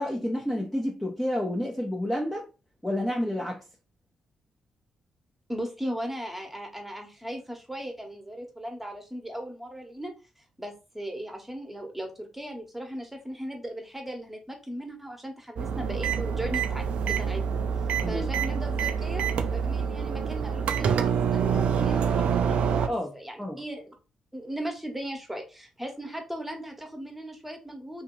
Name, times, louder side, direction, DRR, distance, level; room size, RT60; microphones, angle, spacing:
voice 1, 0.0-2.4 2.8-3.6 18.0-18.3 22.9-23.1 23.4-23.6, left 1 dB, 10° left, 0.9 m, -29 dB
voice 2, 5.5-10.1 10.6-17.6 18.1-19.2 19.5-23.9 24.3-28.0, right 1 dB, 10° right, 1.3 m, -37 dB
sound 1, 15.6-22.9, right 7 dB, 65° right, 0.4 m, -26 dB
2.9 x 2.8 x 3.8 m
hypercardioid pair, 40°, 2 cm